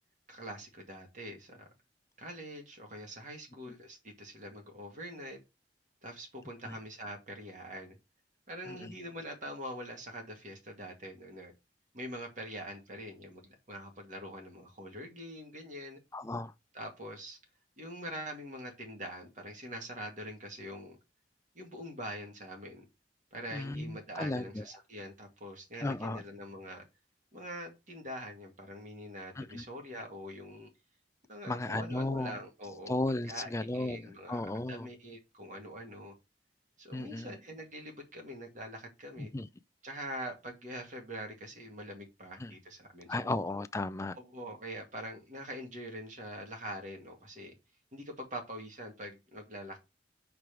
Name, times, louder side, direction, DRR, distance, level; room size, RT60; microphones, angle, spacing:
voice 1, 0.3-1.6 2.2-5.4 6.0-8.0 8.5-11.5 11.9-16.0 16.7-17.4 17.8-21.0 21.5-22.8 23.3-26.8 27.3-30.7 31.3-33.0 33.2-36.1 36.8-39.3 39.8-43.3 44.2-47.5 47.9-49.8, equal, 45° right, 2.2 m, -44 dB
voice 2, 16.1-16.5 23.5-24.6 25.8-26.2 29.4-29.6 31.5-32.4 32.9-34.9 36.9-37.4 39.2-39.5 42.4-42.5 43.1-44.2, left 2 dB, 15° left, 0.4 m, -35 dB
5.1 x 4.7 x 6.0 m
head